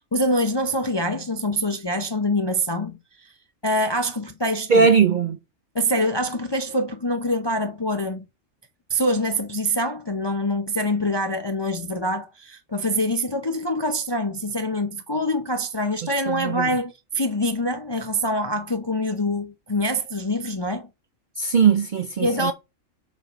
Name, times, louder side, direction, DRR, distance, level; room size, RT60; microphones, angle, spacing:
voice 1, 0.1-2.9 3.2-3.3 3.6-4.9 5.7-8.2 8.9-20.9 22.2-22.5, equal, 30° left, 0.4 m, -25 dB
voice 2, 4.7-5.4 16.3-16.7 21.4-22.5, right 6 dB, 50° right, 0.6 m, -19 dB
7.1 x 4.6 x 5.0 m
omnidirectional pair, 1.4 m